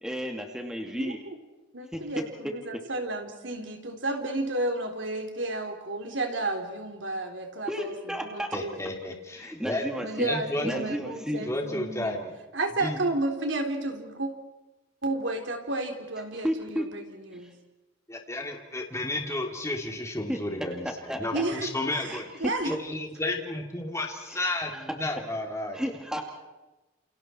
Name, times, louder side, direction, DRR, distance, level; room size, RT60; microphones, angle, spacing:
voice 1, 0.0-1.2 1.9-2.0 2.4-2.5 7.7-8.5 9.4-10.3 10.6-11.4 16.4-16.9 20.3-20.4 21.1-21.4 22.1-22.2 24.3-24.4 24.7-24.8 25.7-26.2, equal, 5° right, 2 dB, 2.4 m, -32 dB
voice 2, 0.9-1.4 1.7-8.8 9.9-12.2 12.5-14.3 15.0-17.5 21.3-22.7, right 2 dB, 65° right, 4 dB, 3.7 m, -32 dB
voice 3, 8.5-9.9 10.2-10.7 11.4-12.3 12.8-13.0 18.1-22.3 22.6-25.8, left 1 dB, 15° left, 2 dB, 3.0 m, -32 dB
30.0 x 29.0 x 4.5 m, 1.1 s
head